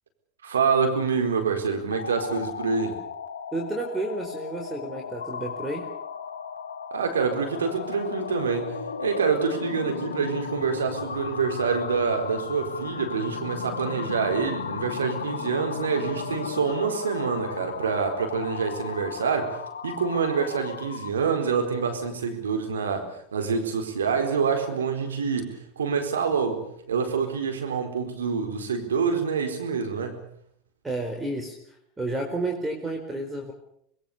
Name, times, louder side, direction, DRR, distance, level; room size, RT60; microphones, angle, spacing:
voice 1, 0.4-3.0 6.9-19.6 19.8-30.2, right 5 dB, 85° right, 5 dB, 4.3 m, -26 dB
sound 1, 1.8-21.2, left 6 dB, 90° left, 1.5 m, -35 dB
voice 2, 3.5-5.9 30.8-31.6 32.0-33.5, right 2 dB, 15° right, 3 dB, 4.6 m, -31 dB
25.5 x 21.0 x 6.9 m, 0.69 s
hypercardioid pair, 90°, 0 cm